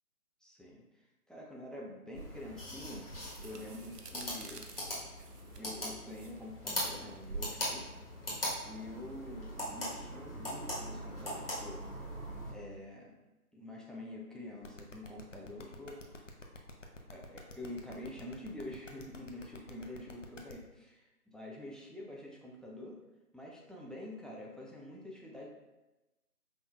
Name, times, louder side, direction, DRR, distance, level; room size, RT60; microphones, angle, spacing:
voice 1, 0.4-3.1 3.4-5.0 5.6-8.0 8.6-11.8 12.5-13.1 13.5-16.2 17.1-23.0 23.3-25.5, left 1 dB, ahead, -3 dB, 0.4 m, -47 dB
sound 1, 2.1-12.5, equal, 40° left, 1.1 m, -41 dB
sound 2, 2.5-9.3, right 3 dB, 85° right, 0.7 m, -49 dB
sound 3, 14.6-20.5, left 2 dB, 55° left, 0.5 m, -49 dB
5.3 x 2.7 x 2.3 m, 1.0 s
figure-of-eight pair, 165°, 47 cm